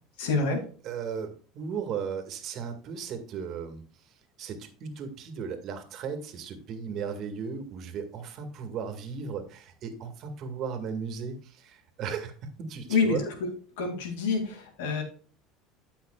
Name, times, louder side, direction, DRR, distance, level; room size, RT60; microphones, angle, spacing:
voice 1, 0.2-0.6 12.9-13.5 13.8-15.0, left 4 dB, 85° left, 4 dB, 2.4 m, -27 dB
voice 2, 0.8-13.3, right 6 dB, 55° right, 6 dB, 1.9 m, -36 dB
13.5 x 5.7 x 2.4 m, 0.40 s
supercardioid pair, 100°, 0 cm